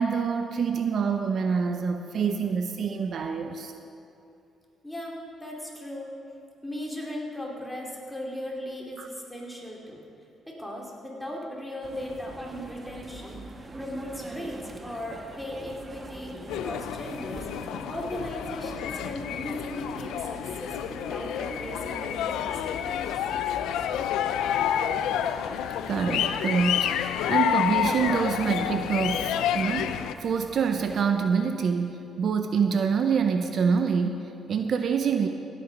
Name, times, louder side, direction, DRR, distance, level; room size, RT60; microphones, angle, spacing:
voice 1, 0.0-3.7 9.0-9.1 25.9-35.3, right 6 dB, 60° right, 6 dB, 0.6 m, -26 dB
voice 2, 4.8-6.1 6.6-10.0 10.5-13.4 13.8-17.5 17.8-23.1, left 1 dB, 5° left, -3 dB, 2.8 m, -37 dB
sound 1, 11.8-31.0, right 2 dB, 25° right, 1.3 m, -44 dB
sound 2, 16.5-30.1, left 9 dB, 90° left, 0.4 m, -29 dB
16.5 x 8.3 x 5.3 m, 2.6 s
cardioid pair, 90°, 0 cm